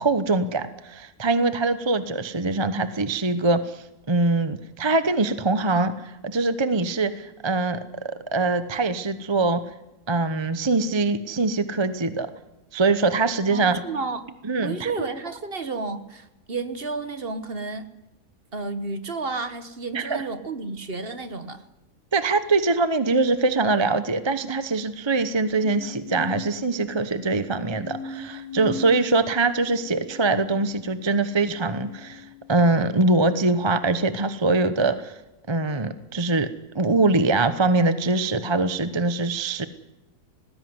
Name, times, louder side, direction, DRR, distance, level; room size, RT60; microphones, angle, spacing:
voice 1, 0.0-9.6 10.1-12.3 12.7-13.8 14.4-14.9 19.9-20.2 22.1-35.2 35.5-36.5 36.7-39.7, right 3 dB, 20° right, 12 dB, 0.9 m, -23 dB
voice 2, 13.5-14.3 14.6-17.9 18.5-21.6, right 3 dB, 45° right, 11 dB, 1.5 m, -31 dB
sound 1, 25.6-33.0 33.7-34.2, left 2 dB, 80° left, 4.7 m, -40 dB
19.5 x 16.0 x 9.6 m, 0.95 s
omnidirectional pair, 1.5 m